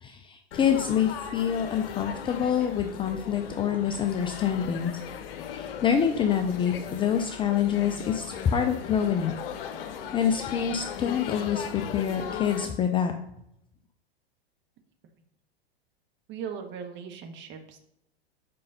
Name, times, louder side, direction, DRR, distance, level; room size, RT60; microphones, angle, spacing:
voice 1, 0.0-4.9 5.5-9.3 10.1-13.1, left 8 dB, 15° left, 6 dB, 0.4 m, -26 dB
Laughter / Chatter / Crowd, 0.5-12.7, left 8 dB, 60° left, 1.1 m, -38 dB
voice 2, 16.3-17.8, right 7 dB, 35° right, 6 dB, 1.4 m, -38 dB
5.4 x 5.3 x 5.4 m, 0.80 s
hypercardioid pair, 105°, 32 cm